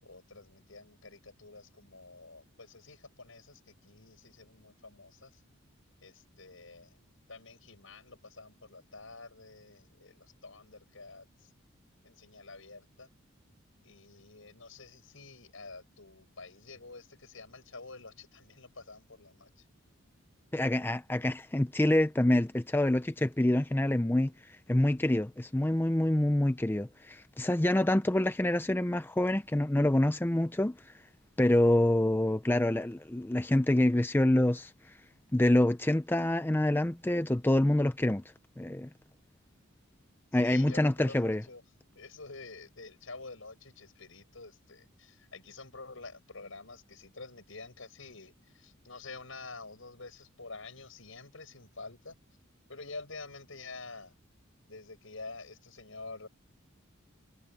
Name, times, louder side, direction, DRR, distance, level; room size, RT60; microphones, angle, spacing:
voice 1, 0.0-5.4 6.0-7.0 7.3-11.5 12.0-13.1 13.8-19.6 40.3-41.6 41.9-52.2 52.7-54.2 54.7-56.3, left 3 dB, 70° left, 6.2 m, -48 dB
voice 2, 20.5-30.9 31.4-34.7 35.3-38.2 38.6-38.9 40.3-41.4, left 1 dB, 10° left, 0.5 m, -26 dB
head